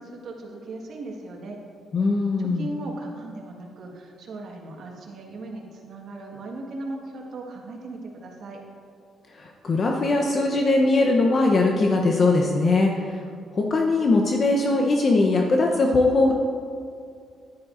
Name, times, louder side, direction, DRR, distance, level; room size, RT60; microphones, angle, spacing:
voice 1, 0.0-1.6 2.4-8.6, right 2 dB, 65° right, 0 dB, 1.5 m, -37 dB
voice 2, 1.9-2.7 9.3-13.2 13.5-16.3, left 2 dB, 45° left, 1 dB, 0.8 m, -21 dB
10.5 x 10.5 x 2.5 m, 2.3 s
cardioid pair, 90°, 0 cm